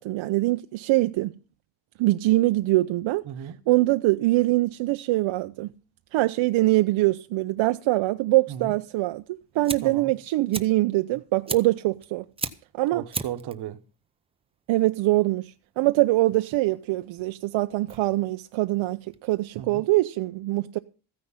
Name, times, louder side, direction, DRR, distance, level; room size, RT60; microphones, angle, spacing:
voice 1, 0.0-1.3 2.0-3.2 3.7-5.7 6.1-9.2 9.5-12.2 12.7-13.0 14.7-20.8, right 18 dB, 75° right, 0.7 m, -23 dB
voice 2, 3.3-3.6 8.5-8.7 9.8-10.1 12.9-13.8 19.6-19.8, right 10 dB, 55° right, 1.1 m, -35 dB
Fire, 9.2-19.7, right 4 dB, 10° right, 0.6 m, -39 dB
14.5 x 9.7 x 5.7 m
cardioid pair, 165°, 48 cm